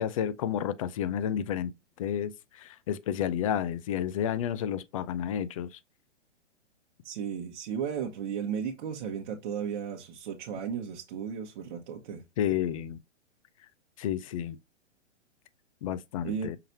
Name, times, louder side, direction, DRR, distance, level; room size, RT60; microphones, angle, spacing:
voice 1, 0.0-1.7 2.0-5.7 12.4-13.0 14.0-14.6 15.8-16.6, left 9 dB, 30° left, 0.4 m, -31 dB
voice 2, 7.0-12.2 16.2-16.5, right 7 dB, 45° right, 1.1 m, -35 dB
5.8 x 3.1 x 2.6 m
hypercardioid pair, 125°, 36 cm